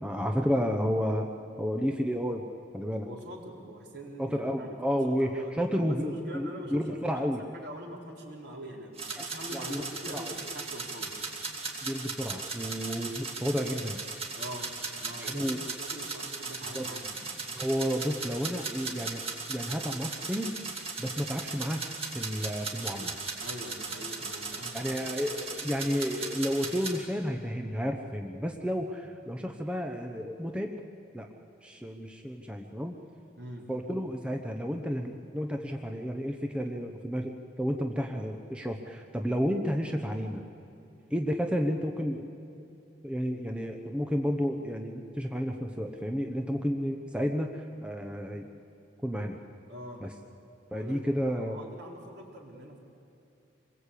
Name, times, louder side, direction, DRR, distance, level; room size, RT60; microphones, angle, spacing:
voice 1, 0.0-1.3 1.6-2.5 2.7-3.1 4.2-7.4 9.2-9.3 9.5-10.3 11.8-14.0 15.2-15.6 16.7-16.9 17.5-20.6 21.0-23.1 24.7-30.8 31.1-31.3 31.6-32.9 33.7-40.4 41.1-42.3 43.0-48.5 49.0-49.4 50.0-50.1 50.7-51.6, equal, 5° right, 3 dB, 0.9 m, -31 dB
voice 2, 3.0-11.2 14.3-14.7 15.0-17.3 23.0-23.1 23.4-25.0 33.4-33.7 49.7-50.1 50.7-52.8, equal, 55° right, 0 dB, 4.0 m, -43 dB
sound 1, 9.0-27.0, right 4 dB, 30° right, 2.9 m, -37 dB
26.0 x 21.5 x 8.5 m, 2.7 s
head